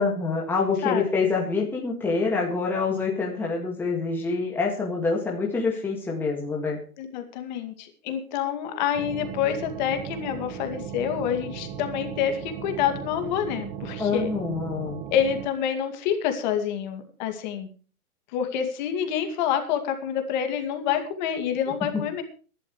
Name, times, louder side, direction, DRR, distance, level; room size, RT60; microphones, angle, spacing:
voice 1, 0.0-6.8 14.0-15.0, left 4 dB, 5° left, -2 dB, 2.0 m, -26 dB
voice 2, 7.0-14.3 15.1-17.7 18.3-22.2, left 9 dB, 30° left, 6 dB, 2.4 m, -27 dB
sound 1, 8.9-15.5, right 9 dB, 20° right, 1.2 m, -37 dB
22.0 x 12.0 x 3.2 m, 0.37 s
hypercardioid pair, 160°, 45 cm